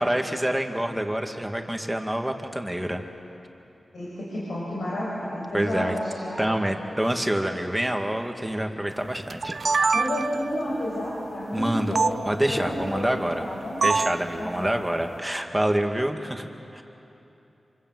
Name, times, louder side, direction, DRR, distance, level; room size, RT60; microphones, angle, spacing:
voice 1, 0.0-3.0 5.5-5.9 6.4-9.6 11.5-12.0 12.3-13.5 13.8-16.8, right 1 dB, 10° right, 4 dB, 2.4 m, -27 dB
voice 2, 3.9-6.6 9.9-12.2 12.5-13.8 14.4-14.7, left 1 dB, 90° left, -7 dB, 6.7 m, -31 dB
sound 1, 9.3-10.5 12.0-12.1 13.8-14.2, right 4 dB, 70° right, 0.6 m, -23 dB
27.5 x 25.0 x 8.0 m, 2.9 s
cardioid pair, 50°, 0 cm